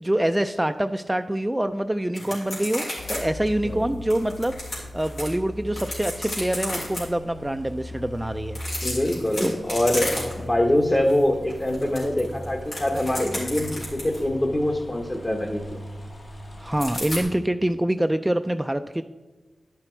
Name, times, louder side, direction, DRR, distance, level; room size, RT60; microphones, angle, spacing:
voice 1, 0.0-4.6 4.9-8.6 9.4-9.6 16.6-19.0, right 1 dB, 15° right, 8 dB, 0.3 m, -25 dB
sound 1, 2.1-3.2 3.5-3.6 4.1-5.3 5.7-7.0 8.5-10.6 10.9-11.2 11.5-14.3 16.8-17.2, left 1 dB, 90° left, 3.3 m, -32 dB
sound 2, 3.0-17.4, left 1 dB, 60° left, 1.4 m, -40 dB
voice 2, 8.8-15.8, left 1 dB, 30° left, 2 dB, 1.0 m, -24 dB
10.5 x 5.9 x 4.4 m, 1.2 s
cardioid pair, 50°, 0 cm